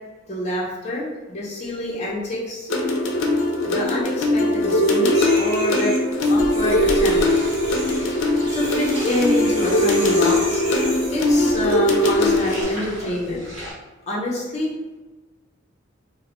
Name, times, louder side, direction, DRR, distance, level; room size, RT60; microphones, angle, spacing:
voice 1, 0.3-2.7 3.6-6.0 6.3-7.2 8.2-10.6 11.1-13.7 14.1-14.7, left 1 dB, 35° left, -5 dB, 0.6 m, -27 dB
sound 1, 2.7-12.6, left 1 dB, 85° left, 0.4 m, -20 dB
sound 2, 4.6-11.5 12.4-12.6, right 1 dB, 20° right, 0.4 m, -35 dB
sound 3, 6.3-13.7, equal, 40° right, 1.1 m, -36 dB
2.3 x 2.1 x 2.9 m, 1.2 s
head